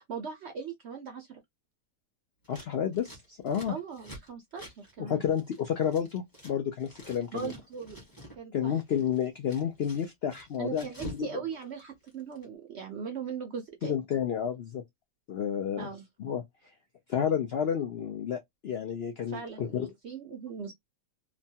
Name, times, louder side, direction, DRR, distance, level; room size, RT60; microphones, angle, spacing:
voice 1, 0.0-1.4 3.7-5.2 7.3-8.0 8.4-8.8 10.6-14.0 15.8-16.0 19.3-20.7, right 6 dB, 60° right, 0.7 m, -39 dB
Scissors, 2.4-6.5 6.8-8.4 8.7-11.3 11.5-12.4, right 1 dB, 15° left, 0.8 m, -48 dB
voice 2, 2.5-3.7 5.0-7.5 8.5-10.9 11.2-11.3 13.8-14.8 15.3-15.9 16.2-16.4 17.1-19.9, left 8 dB, 85° left, 0.5 m, -30 dB
3.0 x 2.2 x 2.7 m
omnidirectional pair, 1.7 m